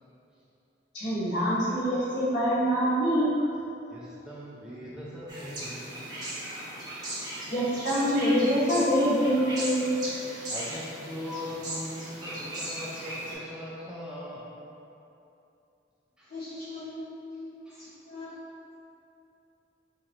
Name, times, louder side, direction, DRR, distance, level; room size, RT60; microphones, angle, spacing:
voice 1, 0.9-3.3 7.5-9.9, equal, 65° left, -11 dB, 1.3 m, -25 dB
voice 2, 3.9-6.4 10.5-14.6 16.2-16.8 17.3-17.4 17.7-17.8, left 1 dB, 5° right, -8 dB, 0.4 m, -41 dB
sound 1, 5.3-13.3, right 1 dB, 20° right, 0.8 m, -37 dB
voice 3, 16.3-17.0 17.3-18.3, left 3 dB, 50° left, -12 dB, 0.6 m, -41 dB
4.1 x 3.1 x 2.4 m, 2.8 s
head